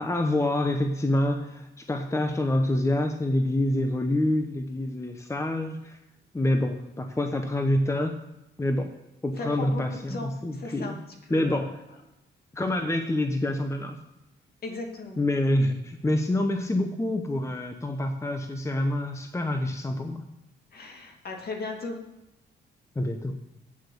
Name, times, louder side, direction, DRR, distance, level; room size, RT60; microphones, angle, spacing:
voice 1, 0.0-6.0 6.3-8.2 8.6-8.9 9.2-11.0 11.3-11.8 12.5-14.0 15.2-20.2 22.9-23.4, left 1 dB, 15° left, 6 dB, 1.0 m, -27 dB
voice 2, 9.4-11.0 11.3-11.7 12.8-12.9 14.6-15.2 20.7-22.0, left 3 dB, 50° left, 2 dB, 2.5 m, -37 dB
8.9 x 7.8 x 7.0 m, 0.92 s
cardioid pair, 85°, 20 cm